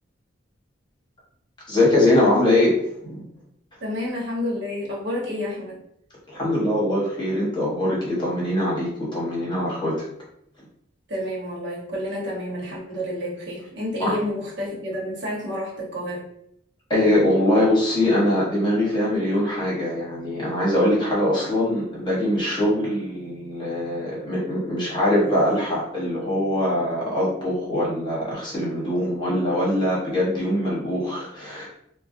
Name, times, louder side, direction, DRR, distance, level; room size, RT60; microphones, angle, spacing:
voice 1, 1.7-2.8 3.1-3.3 6.3-10.0 14.0-14.2 16.9-31.7, left 1 dB, 25° left, -5 dB, 1.0 m, -22 dB
voice 2, 3.8-5.8 11.1-16.3, left 1 dB, 65° right, -4 dB, 1.1 m, -29 dB
3.8 x 2.2 x 2.6 m, 0.74 s
head